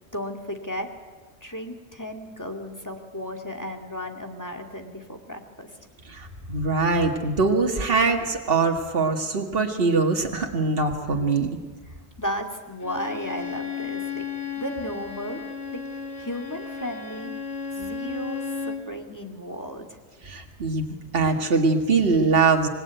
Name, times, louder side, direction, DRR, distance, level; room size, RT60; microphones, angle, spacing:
voice 1, 0.1-0.9 1.4-5.7 11.9-14.3 14.6-15.4 15.7-15.8 16.2-17.3 17.7-20.0, equal, 15° left, 4 dB, 2.3 m, -34 dB
voice 2, 6.1-11.5 20.2-20.9 21.1-22.7, right 4 dB, 60° right, 2 dB, 2.2 m, -22 dB
Bowed string instrument, 12.8-18.9, left 5 dB, 65° left, 2.2 m, -34 dB
26.0 x 21.0 x 9.3 m, 1.3 s
omnidirectional pair, 1.1 m